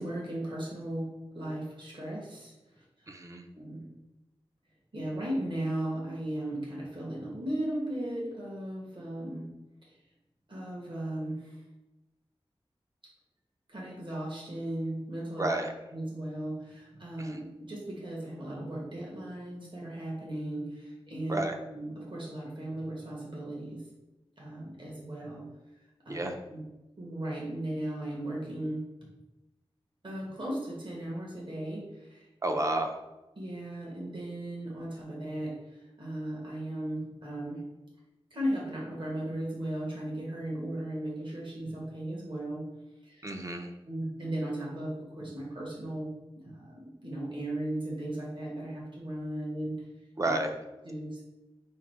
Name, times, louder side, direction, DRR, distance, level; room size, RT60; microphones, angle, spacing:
voice 1, 0.0-2.5 3.5-3.8 4.9-9.4 10.5-11.6 13.7-15.5 15.9-21.4 21.7-23.8 24.4-25.4 26.0-26.1 26.5-26.6 27.0-28.8 30.0-32.2 33.4-35.5 36.0-37.6 38.3-42.6 43.0-43.3 43.9-46.1 46.4-49.7 50.2-50.3 50.8-51.2, right 1 dB, 55° right, -4 dB, 1.2 m, -36 dB
voice 2, 3.1-3.4 15.4-15.7 17.2-17.4 21.3-21.6 26.1-26.4 32.4-33.0 43.2-43.7 50.2-50.5, right 2 dB, 30° right, 4 dB, 0.5 m, -31 dB
4.6 x 2.1 x 4.5 m, 1.0 s
wide cardioid pair, 75°, 10 cm